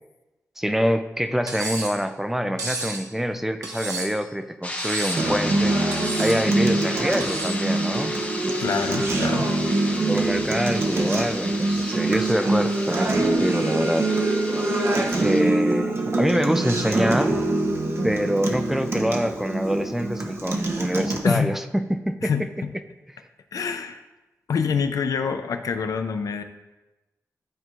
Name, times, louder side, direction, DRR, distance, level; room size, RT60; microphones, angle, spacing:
voice 1, 0.6-5.8 6.2-8.1 10.1-14.1 15.1-17.4 18.0-22.3, equal, 5° right, 8 dB, 0.3 m, -25 dB
Cutlery silverware, 1.5-2.0 2.6-3.0 3.6-4.2 4.8-5.3 5.9-6.4 7.2-7.6, right 2 dB, 75° right, 1.1 m, -32 dB
sound 1, 4.6-15.4, left 2 dB, 25° left, 0.7 m, -34 dB
Acoustic guitar, 5.2-21.2, right 2 dB, 45° right, 0.8 m, -24 dB
voice 2, 8.6-9.5 21.2-21.5 22.2-22.7 23.5-24.0 24.5-26.4, left 6 dB, 80° left, 8 dB, 0.4 m, -26 dB
11.5 x 4.5 x 2.4 m, 1.1 s
wide cardioid pair, 150°, 6 cm